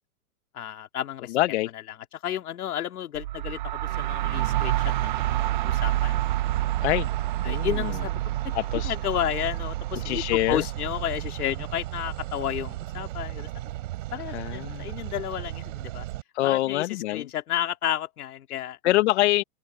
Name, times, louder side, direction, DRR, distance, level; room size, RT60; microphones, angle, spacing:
voice 1, 0.5-1.4 2.1-6.2 7.4-8.5 8.8-13.5 14.1-16.1 16.4-18.8, left 11 dB, 75° left, 3.4 m, -32 dB
voice 2, 1.3-1.7 6.8-7.1 7.4-7.9 8.5-8.9 9.9-10.6 14.1-14.8 16.3-17.3 18.8-19.4, left 17 dB, 45° left, 1.2 m, -25 dB
sound 1, 3.1-14.8, right 14 dB, 35° right, 0.4 m, -30 dB
sound 2, 4.3-16.2, right 16 dB, 55° right, 5.7 m, -36 dB
hypercardioid pair, 150°, 46 cm